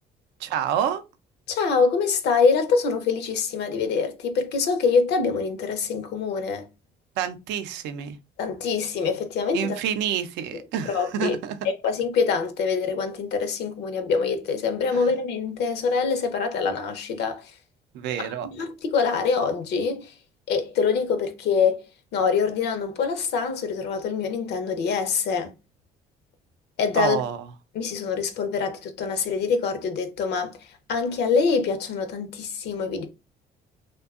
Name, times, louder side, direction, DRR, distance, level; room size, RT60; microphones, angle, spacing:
voice 1, 0.4-1.0 7.2-8.2 9.5-11.6 14.9-15.1 17.9-18.5 27.0-27.4, right 9 dB, 80° right, 0.4 m, -28 dB
voice 2, 1.5-6.7 8.4-9.8 10.8-11.4 11.6-17.6 18.2-20.1 20.5-21.8 22.1-25.5 26.8-27.2 27.7-33.1, left 5 dB, 70° left, 0.5 m, -25 dB
2.6 x 2.2 x 2.4 m
supercardioid pair, 80°, 18 cm